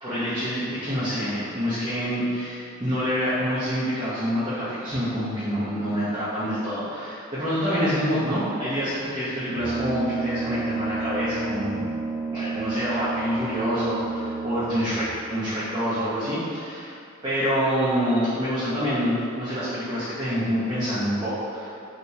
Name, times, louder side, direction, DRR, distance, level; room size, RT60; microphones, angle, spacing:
voice 1, 0.0-11.9 12.3-16.9 17.2-21.7, equal, 20° right, -13 dB, 0.7 m, -26 dB
Brass instrument, 9.5-15.2, right 3 dB, 85° right, 0.4 m, -30 dB
3.4 x 2.8 x 2.6 m, 2.5 s
head